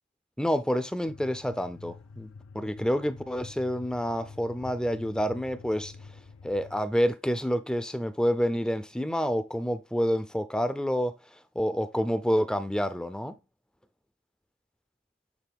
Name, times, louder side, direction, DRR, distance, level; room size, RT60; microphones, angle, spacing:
voice 1, 0.4-5.9 6.4-11.2 11.6-13.4, equal, 5° left, 0.4 m, -28 dB
sound 1, 1.1-6.8, left 4 dB, 80° left, 0.5 m, -48 dB
8.2 x 3.9 x 3.5 m
head